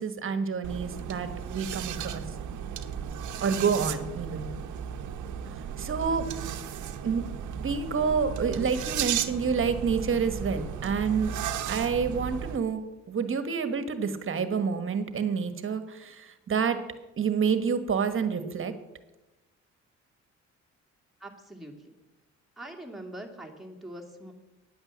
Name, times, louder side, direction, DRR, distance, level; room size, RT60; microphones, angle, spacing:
voice 1, 0.0-2.2 3.4-4.5 5.8-6.2 7.0-7.3 7.6-11.3 11.7-12.8 13.1-16.8 17.2-18.7, right 6 dB, 45° right, 10 dB, 1.3 m, -28 dB
sound 1, 0.6-12.6, right 8 dB, 75° right, 0.9 m, -35 dB
voice 2, 21.2-21.9 22.6-24.3, right 1 dB, ahead, 0 dB, 2.3 m, -43 dB
9.7 x 8.9 x 7.4 m, 1.0 s
cardioid pair, 90°, 30 cm